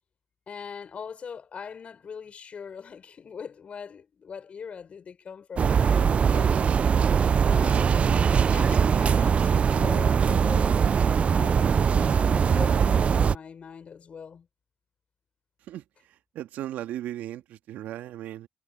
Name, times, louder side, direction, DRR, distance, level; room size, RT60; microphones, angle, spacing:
voice 1, 0.5-6.5 7.5-10.8 11.3-14.5, left 6 dB, 50° left, 4.2 m, -41 dB
sound 1, 5.6-13.3, right 6 dB, 45° right, 0.6 m, -21 dB
voice 2, 16.4-18.5, right 12 dB, 70° right, 2.0 m, -36 dB
hypercardioid pair, 55°, 3 cm